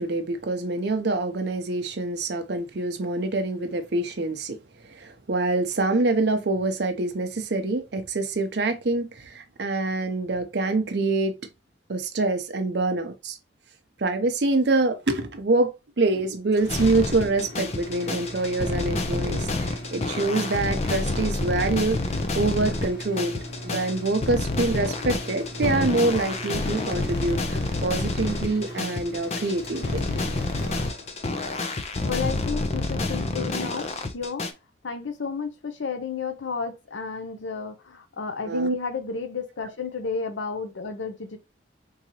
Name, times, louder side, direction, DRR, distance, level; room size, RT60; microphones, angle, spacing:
voice 1, 0.0-4.6 4.9-11.3 11.9-13.4 14.0-22.0 22.4-23.4 23.6-30.1 38.4-38.7, right 2 dB, 65° right, 0.6 m, -25 dB
sound 1, 16.5-31.5, equal, 60° left, 1.3 m, -39 dB
sound 2, 16.7-34.5, left 2 dB, 35° left, 0.4 m, -28 dB
voice 2, 32.0-33.9 34.1-34.5 34.8-41.4, left 5 dB, 85° left, 0.7 m, -32 dB
3.8 x 2.8 x 2.9 m
head